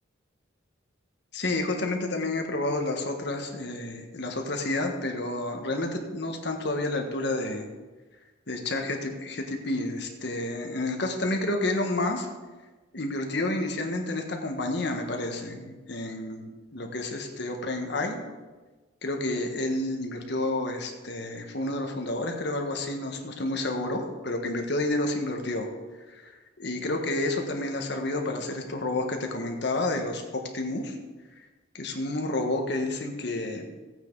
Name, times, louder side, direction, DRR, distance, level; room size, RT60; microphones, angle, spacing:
voice 1, 1.3-7.7 8.5-12.3 12.9-18.2 19.0-25.7 26.1-31.0 31.4-31.5 31.7-33.7, left 2 dB, 60° left, 3 dB, 1.5 m, -30 dB
16.0 x 9.2 x 4.0 m, 1.3 s
head